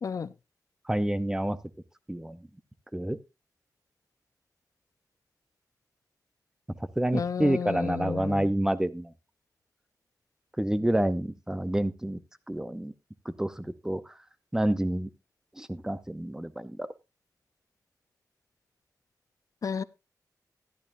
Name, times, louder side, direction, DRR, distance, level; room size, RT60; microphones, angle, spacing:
voice 1, 0.0-0.3 7.1-8.5 19.6-19.8, left 6 dB, 55° left, 0.5 m, -32 dB
voice 2, 0.9-1.6 2.1-2.5 2.9-3.2 7.0-9.1 10.6-12.2 12.5-12.9 13.4-14.0 14.5-15.1 15.6-16.9, right 1 dB, 10° right, 0.7 m, -28 dB
13.5 x 11.0 x 2.6 m
wide cardioid pair, 145°, 7 cm